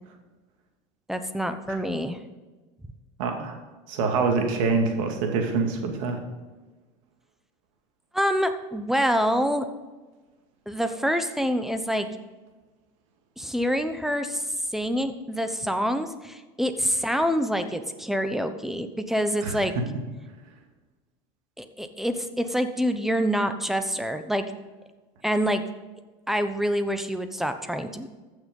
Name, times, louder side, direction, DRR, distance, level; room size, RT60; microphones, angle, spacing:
voice 1, 1.1-2.2 8.1-9.7 10.7-12.1 13.4-14.4 14.7-19.7 21.6-24.5 25.2-25.6 26.3-28.1, equal, ahead, 8 dB, 0.9 m, -26 dB
voice 2, 3.2-3.6 3.9-6.2 19.4-19.6, right 4 dB, 75° right, 3 dB, 2.3 m, -25 dB
14.5 x 6.4 x 5.4 m, 1.2 s
supercardioid pair, 115°, 17 cm